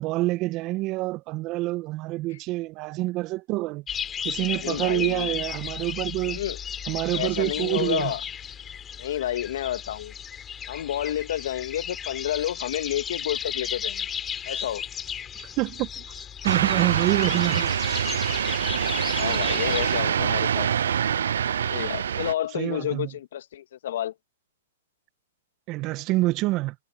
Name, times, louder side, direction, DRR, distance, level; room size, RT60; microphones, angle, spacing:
voice 1, 0.0-3.8 4.2-6.4 6.9-8.1 15.4-17.7 22.5-23.1 25.7-26.7, right 19 dB, 40° right, 1.5 m, -27 dB
sound 1, 3.9-20.0, left 8 dB, 20° left, 4.4 m, -34 dB
voice 2, 4.5-5.3 6.2-6.6 7.1-8.2 9.0-10.1 10.7-14.1 14.5-14.8 19.1-20.7 21.6-24.1, left 11 dB, 65° left, 2.2 m, -30 dB
sound 2, 16.4-22.3, right 8 dB, 75° right, 0.5 m, -25 dB
hypercardioid pair, 125°, 0 cm